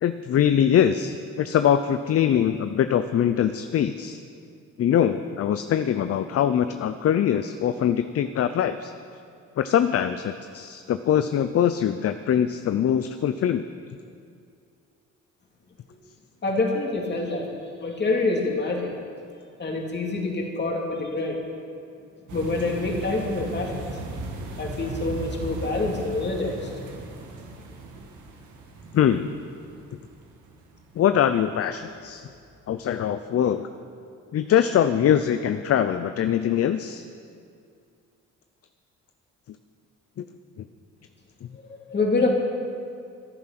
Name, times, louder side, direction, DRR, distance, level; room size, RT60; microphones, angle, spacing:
voice 1, 0.0-4.2 4.8-8.9 9.6-13.7 28.9-29.3 31.0-32.3 32.7-33.7 34.3-37.0, left 9 dB, 50° left, 10 dB, 0.6 m, -23 dB
voice 2, 16.4-17.5 17.8-18.9 19.6-21.4 22.3-23.7 24.6-26.7 41.5-42.3, left 3 dB, 35° left, 0 dB, 2.7 m, -26 dB
sound 1, 22.3-31.3 31.9-32.1 32.4-32.5, right 2 dB, 80° right, 2.0 m, -37 dB
13.5 x 11.0 x 6.0 m, 2.4 s
cardioid pair, 90°, 30 cm